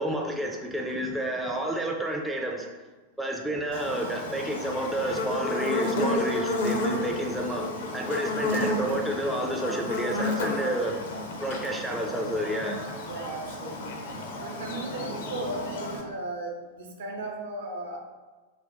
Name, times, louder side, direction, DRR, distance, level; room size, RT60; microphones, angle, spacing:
voice 1, 0.0-2.8 3.2-7.6 7.9-11.0 11.4-12.8, right 1 dB, 5° right, 0 dB, 0.4 m, -30 dB
Buzz, 3.7-16.0, left 2 dB, 60° left, 0.5 m, -31 dB
voice 2, 13.1-14.0 14.4-18.0, right 1 dB, 60° right, 1 dB, 0.6 m, -36 dB
3.3 x 2.1 x 3.8 m, 1.2 s
figure-of-eight pair, 90°, 0 cm